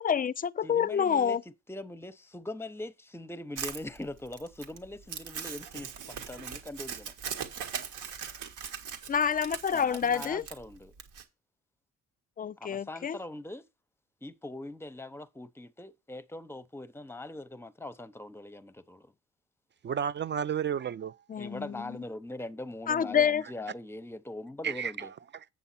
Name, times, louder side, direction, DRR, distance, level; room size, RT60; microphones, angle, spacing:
voice 1, 0.0-1.4 9.1-10.4 12.4-13.2 21.3-22.0 22.9-23.4, left 7 dB, 30° left, 0.4 m, -28 dB
voice 2, 0.6-7.1 9.7-10.9 12.6-13.7 14.2-19.1 21.4-25.1, left 2 dB, 10° left, 0.7 m, -42 dB
Crumpling crinkling, 3.6-11.2, right 7 dB, 80° right, 1.6 m, -40 dB
voice 3, 19.8-21.2 24.6-25.5, right 8 dB, 40° right, 0.4 m, -32 dB
8.0 x 6.9 x 4.2 m
cardioid pair, 90°, 30 cm